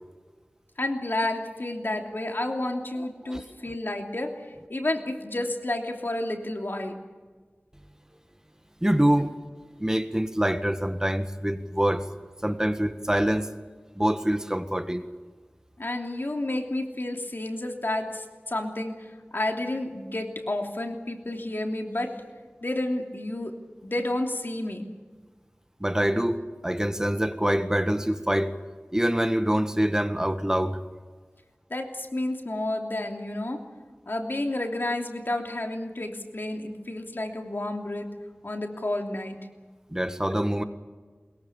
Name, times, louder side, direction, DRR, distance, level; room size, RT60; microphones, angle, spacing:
voice 1, 0.8-7.0 15.8-22.2 22.6-24.9 31.7-33.6 34.1-38.1 38.4-39.4, left 1 dB, 65° left, 3 dB, 3.0 m, -31 dB
voice 2, 8.8-9.4 9.8-12.0 12.4-13.5 13.9-15.0 25.8-28.5 28.9-30.8 39.9-40.6, equal, 15° right, 8 dB, 1.5 m, -25 dB
22.0 x 22.0 x 7.2 m, 1.4 s
wide cardioid pair, 45°, 4 cm